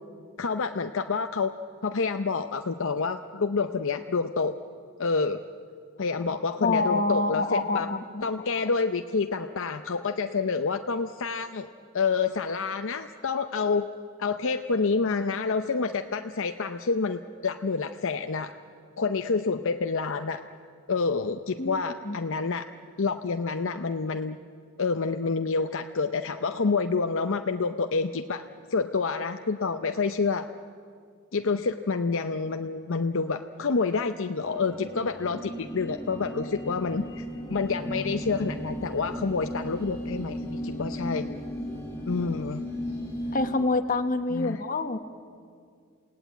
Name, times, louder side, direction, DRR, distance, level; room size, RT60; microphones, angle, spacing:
voice 1, 0.4-1.5 1.8-4.6 5.0-5.4 6.0-7.9 8.2-11.7 11.9-13.9 14.2-18.5 19.0-20.4 20.9-22.7 23.0-24.4 24.8-28.4 28.7-30.5 31.3-37.2 37.5-41.3 42.1-42.6 44.3-44.6, left 4 dB, 60° left, 7 dB, 0.7 m, -28 dB
voice 2, 6.6-8.3 21.6-22.2 43.3-45.0, left 3 dB, 40° left, 8 dB, 1.2 m, -27 dB
sound 1, 34.4-43.5, equal, 10° left, 5.1 m, -35 dB
28.0 x 17.5 x 9.1 m, 2.2 s
head